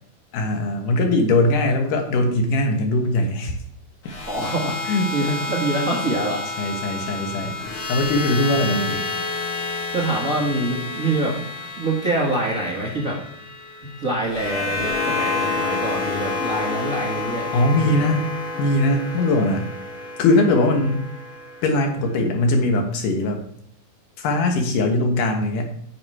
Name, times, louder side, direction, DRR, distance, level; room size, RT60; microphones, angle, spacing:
voice 1, 0.3-3.6 4.9-5.1 6.6-7.6 7.9-9.0 17.5-18.3 18.6-19.7 20.2-21.0 21.6-23.4 24.2-25.7, left 2 dB, 80° left, 4 dB, 2.9 m, -20 dB
sound 1, 4.0-22.2, left 3 dB, 45° left, 2.2 m, -29 dB
voice 2, 4.3-4.8 5.1-6.4 9.9-11.4 11.8-13.2 14.0-17.5 17.8-18.1, right 2 dB, 40° right, -3 dB, 1.2 m, -25 dB
9.8 x 6.5 x 4.3 m, 0.68 s
omnidirectional pair, 3.7 m